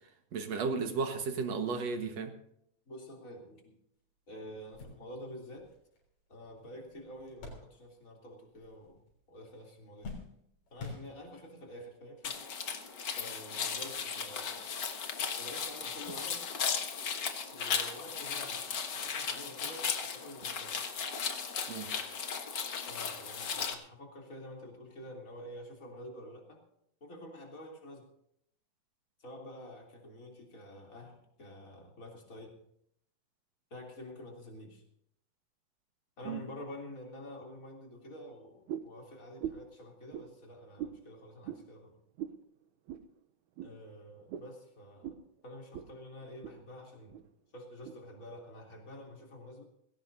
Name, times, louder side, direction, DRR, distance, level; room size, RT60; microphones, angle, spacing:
voice 1, 0.3-2.3 21.7-21.9 36.3-36.4, right 5 dB, 60° right, 5 dB, 2.4 m, -34 dB
voice 2, 2.9-3.7 4.3-5.7 6.3-9.0 9.3-10.1 10.7-12.4 13.2-14.6 15.4-16.4 17.5-18.7 18.9-20.8 22.9-26.6 27.0-28.0 29.2-32.5 33.7-34.8 36.2-41.9 43.6-45.2 45.4-47.2 47.5-49.6, left 1 dB, 25° left, 0 dB, 3.4 m, -48 dB
sound 1, 4.0-4.1 4.5-8.2 8.5-9.2 9.5-11.6 12.3-12.4 13.7-13.9, left 3 dB, 90° left, 5.4 m, -49 dB
sound 2, 12.2-23.7, left 6 dB, 50° left, 1.3 m, -36 dB
sound 3, 38.7-39.0 39.4-39.7 40.1-40.3 40.8-41.0 41.4-41.6 42.2-42.4 42.9-43.1 43.6-43.7 44.3-44.5 45.0-45.2 45.7-45.9 46.2-46.6 47.1-47.2 47.8-48.0, right 10 dB, 75° right, 2.0 m, -40 dB
20.5 x 17.0 x 2.7 m, 0.72 s
omnidirectional pair, 3.7 m